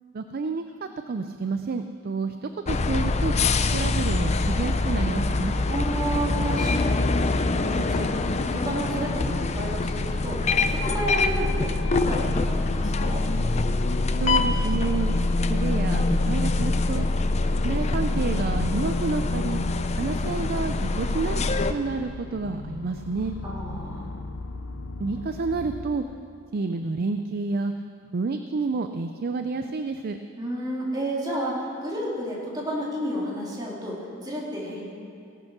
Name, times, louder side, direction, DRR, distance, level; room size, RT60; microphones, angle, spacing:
voice 1, 0.1-3.3 3.7-5.5 14.2-15.1 15.5-17.1 17.5-19.6 20.0-21.4 21.7-23.4 25.0-26.0 26.5-27.7 28.1-30.2, right 4 dB, 50° right, 8 dB, 0.4 m, -29 dB
sound 1, 2.7-21.7, left 3 dB, 35° left, 0.5 m, -24 dB
voice 2, 5.7-7.2 7.6-13.2 23.4-24.1 30.4-34.8, right 1 dB, 20° right, -5 dB, 2.7 m, -31 dB
sound 2, 9.3-26.0, left 3 dB, 85° left, 0.7 m, -39 dB
17.0 x 7.8 x 6.1 m, 2.4 s
head